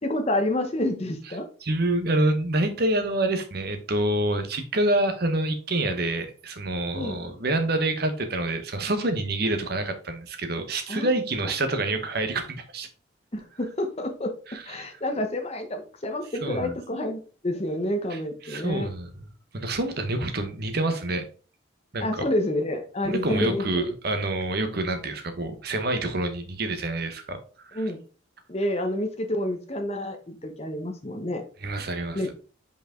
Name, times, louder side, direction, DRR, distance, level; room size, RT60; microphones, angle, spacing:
voice 1, 0.0-1.5 6.9-7.2 10.9-11.1 11.4-11.5 13.3-14.3 14.7-18.9 22.0-23.9 27.7-28.0 28.5-31.4 32.1-32.3, left 1 dB, 35° left, 5 dB, 1.0 m, -29 dB
voice 2, 1.6-12.9 14.5-14.9 16.4-16.7 18.1-19.1 19.5-21.2 21.9-22.2 23.0-27.4 27.7-27.8 31.6-32.3, right 2 dB, 55° right, 8 dB, 1.0 m, -27 dB
5.2 x 4.8 x 3.7 m, 0.38 s
head